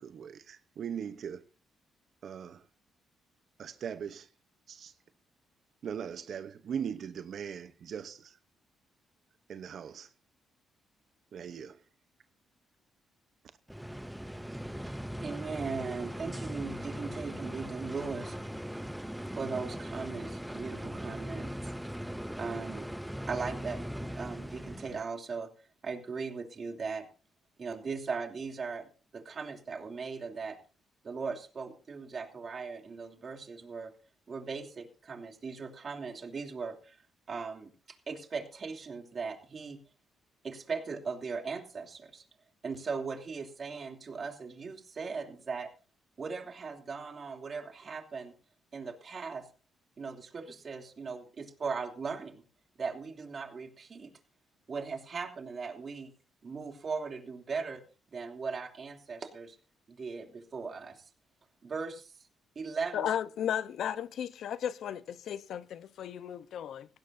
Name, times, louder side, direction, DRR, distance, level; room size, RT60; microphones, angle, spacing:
voice 1, 0.0-1.4 2.2-2.6 3.6-4.3 4.7-4.9 5.8-8.4 9.5-10.1 11.3-11.8, right 8 dB, 60° right, 0.8 m, -40 dB
sound 1, 13.7-25.0, equal, ahead, 0.7 m, -39 dB
voice 2, 14.8-18.4 19.4-21.7 22.4-22.9 23.3-25.5 25.8-27.1 27.6-30.6 31.0-33.9 34.3-39.8 40.4-42.2 42.6-45.7 46.2-48.3 48.7-49.5 50.0-52.4 52.8-54.1 54.7-56.1 56.4-57.8 58.1-59.6 59.9-61.0 61.6-62.3 62.5-63.1, right 5 dB, 40° right, 2.9 m, -38 dB
voice 3, 62.9-66.9, left 9 dB, 70° left, 0.9 m, -35 dB
17.0 x 16.5 x 2.7 m
cardioid pair, 105°, 0 cm